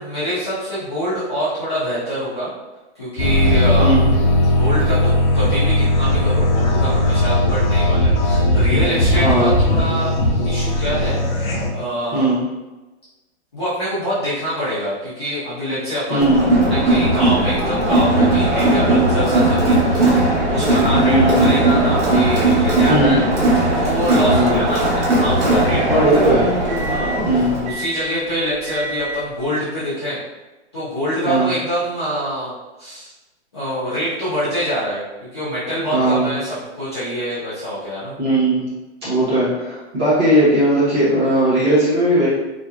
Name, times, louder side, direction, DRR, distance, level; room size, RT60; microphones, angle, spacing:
voice 1, 0.0-2.5 2.9-4.0 4.5-10.1 10.4-12.4 13.5-23.2 23.7-26.3 26.8-30.2 30.7-33.1 33.5-38.1, equal, 25° left, -13 dB, 0.4 m, -25 dB
sound 1, 3.2-11.7, left 1 dB, 55° left, 0.8 m, -17 dB
voice 2, 9.1-9.5 12.1-12.4 16.1-16.6 21.0-21.4 22.8-23.3 24.3-24.6 25.9-26.5 27.2-27.6 31.2-31.5 35.9-36.3 38.2-38.7 39.0-42.3, right 1 dB, 25° right, -11 dB, 0.9 m, -17 dB
Crowd, 16.2-27.7, right 2 dB, 85° right, 1.2 m, -17 dB
sound 2, 20.2-29.4, right 2 dB, 65° right, 0.8 m, -34 dB
2.7 x 2.2 x 2.3 m, 1.1 s
hypercardioid pair, 180°, 34 cm